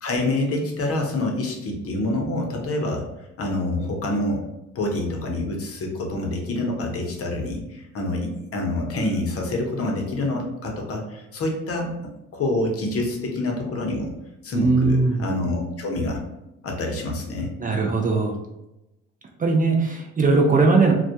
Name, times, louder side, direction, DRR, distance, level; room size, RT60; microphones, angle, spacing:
voice 1, 0.0-3.0 3.4-4.4 4.7-11.9 12.3-14.1 14.4-16.2 16.6-17.5, left 2 dB, 50° left, 1 dB, 0.7 m, -26 dB
voice 2, 14.5-15.3 17.6-18.4 19.4-20.9, right 3 dB, 30° right, 1 dB, 0.4 m, -19 dB
2.2 x 2.1 x 2.7 m, 0.92 s
cardioid pair, 90°, 30 cm